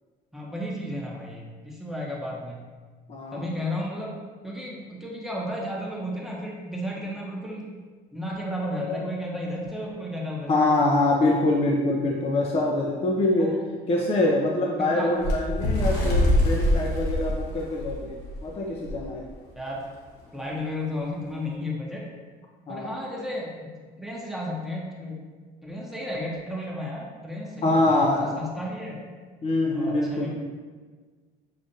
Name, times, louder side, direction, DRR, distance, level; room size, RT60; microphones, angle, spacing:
voice 1, 0.3-2.7 3.3-4.1 4.4-7.8 8.1-10.8 12.0-12.1 13.4-13.6 13.9-14.0 14.9-15.2 19.6-19.8 20.3-22.1 22.7-23.7 24.0-25.2 25.6-29.0 29.7-30.3, left 1 dB, ahead, -4 dB, 0.8 m, -33 dB
voice 2, 3.1-3.5 8.8-9.1 10.5-13.5 13.9-19.2 22.7-22.9 27.6-28.3 29.4-30.3, left 2 dB, 35° left, -1 dB, 0.5 m, -24 dB
Bird, 15.2-18.4 18.9-19.0 19.3-19.6 20.3-20.4, left 1 dB, 85° left, 1.1 m, -24 dB
6.4 x 2.4 x 2.7 m, 1.4 s
cardioid pair, 110°, 17 cm